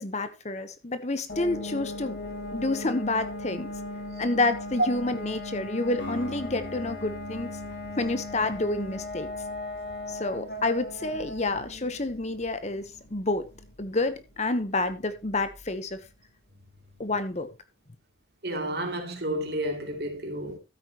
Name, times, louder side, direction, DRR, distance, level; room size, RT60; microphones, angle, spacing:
voice 1, 0.0-2.2 2.5-3.7 4.2-7.5 8.0-9.3 10.1-13.5 13.8-16.0 17.0-17.5, left 2 dB, 35° left, 1.0 m, -29 dB
sound 1, 1.3-15.9, left 2 dB, 60° left, 2.5 m, -38 dB
Acoustic guitar, 6.0-10.1, left 1 dB, 85° left, 6.7 m, -43 dB
voice 2, 18.4-20.6, right 1 dB, 55° right, 2.9 m, -31 dB
13.5 x 8.9 x 3.0 m
head